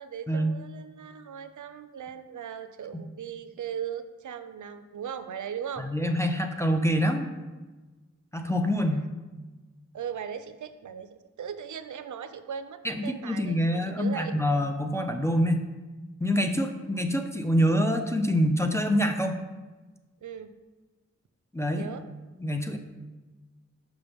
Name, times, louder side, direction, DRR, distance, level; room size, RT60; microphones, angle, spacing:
voice 1, 0.0-5.9 8.8-9.1 9.9-14.4 20.2-20.5 21.8-22.0, right 8 dB, 90° right, 10 dB, 0.5 m, -38 dB
voice 2, 5.8-7.3 8.3-9.0 12.8-15.7 16.2-19.4 21.5-21.9 22.4-22.8, equal, 10° left, 4 dB, 0.4 m, -26 dB
5.9 x 5.5 x 3.5 m, 1.2 s
wide cardioid pair, 75°, 29 cm